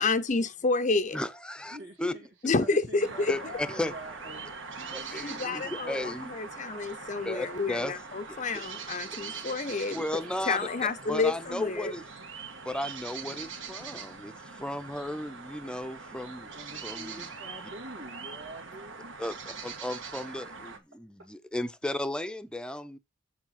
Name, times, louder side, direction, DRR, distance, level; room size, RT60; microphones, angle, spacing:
voice 1, 0.0-1.2 2.4-3.3 5.2-6.0 6.3-10.0 10.5-11.9, left 3 dB, 40° left, 0.6 m, -29 dB
voice 2, 1.1-2.1 3.3-3.9 4.9-6.3 7.2-8.0 8.3-8.4 9.9-10.7 11.1-12.1 12.6-16.5 16.8-17.3 19.2-23.0, left 1 dB, 5° left, 0.7 m, -35 dB
voice 3, 1.7-4.5 4.9-6.1 16.5-19.2, equal, 85° right, 2.3 m, -45 dB
sound 1, 3.0-20.8, right 5 dB, 70° right, 1.6 m, -42 dB
7.3 x 7.1 x 5.7 m
head